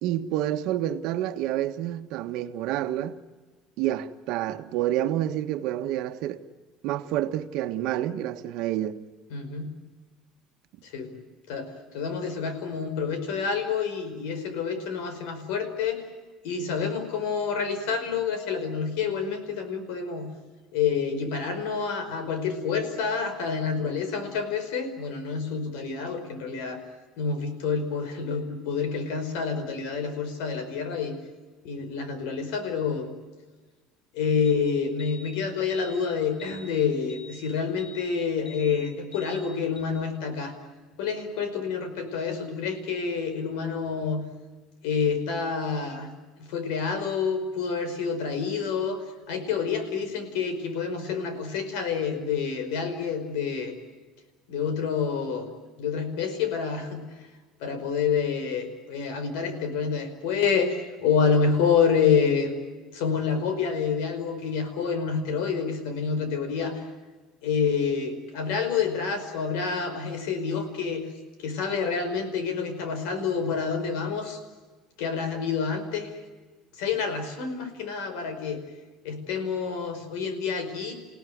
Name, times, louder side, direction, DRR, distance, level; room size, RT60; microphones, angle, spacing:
voice 1, 0.0-3.2 3.8-6.4 6.8-9.0, right 12 dB, 60° right, 1.3 m, -28 dB
voice 2, 9.3-9.7 10.8-11.1 11.5-11.7 11.9-16.0 16.4-20.3 20.7-26.8 27.2-31.1 31.6-33.1 34.1-40.5 41.0-44.2 44.8-46.1 46.4-49.0 49.3-53.7 54.5-55.5 55.8-57.0 57.6-62.5 62.9-66.8 67.4-71.0 71.4-74.4 75.0-76.1 76.8-78.6 79.0-80.9, left 6 dB, 85° left, 5.1 m, -28 dB
sound 1, 34.4-34.6 35.0-35.3 35.7-36.0 36.4-36.7 37.1-37.4 37.8-38.1 38.5-38.7 39.1-39.4 39.8-39.9, left 2 dB, 15° left, 5.5 m, -46 dB
29.5 x 17.0 x 9.4 m
cardioid pair, 170°, 0 cm